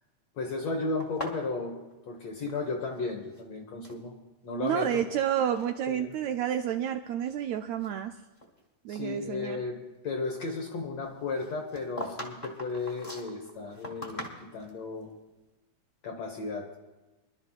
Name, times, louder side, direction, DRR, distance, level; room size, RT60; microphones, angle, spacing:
voice 1, 0.4-1.7 2.1-4.1 4.4-5.0 5.9-6.2 8.9-15.1 16.0-16.7, left 3 dB, 60° left, 0 dB, 2.2 m, -34 dB
sound 1, 1.0-3.0 3.2-4.0 4.7-5.2 5.5-5.8 6.4-6.5 7.1-8.6 8.9-9.1 11.3-14.8, left 1 dB, 20° left, 1.7 m, -42 dB
voice 2, 4.6-8.1 8.8-9.6, right 10 dB, 85° right, 6 dB, 1.5 m, -30 dB
25.5 x 12.0 x 2.4 m, 1.1 s
omnidirectional pair, 3.6 m